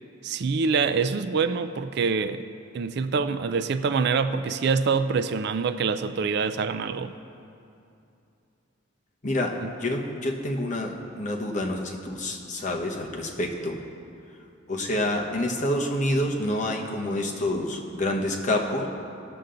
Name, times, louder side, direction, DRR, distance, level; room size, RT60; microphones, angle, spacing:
voice 1, 0.2-2.4 2.7-7.1 9.6-9.7, right 5 dB, 55° right, 11 dB, 0.4 m, -25 dB
voice 2, 9.2-13.8 14.7-18.9, left 1 dB, 40° left, 1 dB, 1.0 m, -28 dB
17.0 x 6.9 x 3.8 m, 2.6 s
head